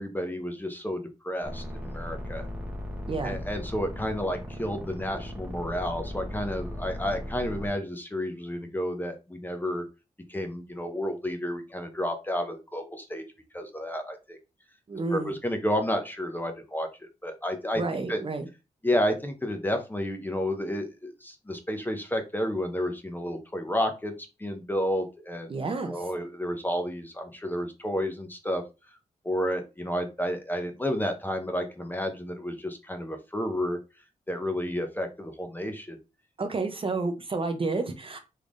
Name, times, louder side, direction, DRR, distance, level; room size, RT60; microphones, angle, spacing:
voice 1, 0.0-2.4 3.2-9.8 10.3-13.2 13.5-14.4 15.1-16.9 17.2-17.8 18.1-18.2 18.8-24.1 24.4-25.5 25.9-28.6 29.2-33.8 34.3-36.0, equal, 15° left, 5 dB, 0.6 m, -31 dB
sound 1, 1.4-7.7, left 1 dB, 10° right, 0.9 m, -37 dB
voice 2, 3.1-3.4 14.9-15.3 17.8-18.5 25.5-25.9 36.4-38.2, right 3 dB, 40° right, 5 dB, 0.6 m, -30 dB
3.5 x 3.2 x 2.5 m, 0.28 s
wide cardioid pair, 110°, 14 cm